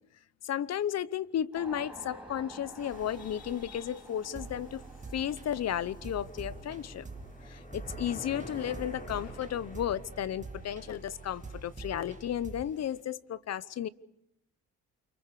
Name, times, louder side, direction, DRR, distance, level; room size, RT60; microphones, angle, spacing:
voice 1, 0.4-4.8 5.1-7.0 7.4-13.9, left 10 dB, 60° left, 18 dB, 0.9 m, -34 dB
sound 1, 1.5-10.2, right 1 dB, 5° right, 7.1 m, -52 dB
sound 2, 2.8-13.0, equal, 25° left, 6.7 m, -51 dB
sound 3, 4.3-12.7, right 3 dB, 25° right, 2.1 m, -46 dB
28.5 x 25.0 x 4.9 m, 0.80 s
cardioid pair, 90°, 30 cm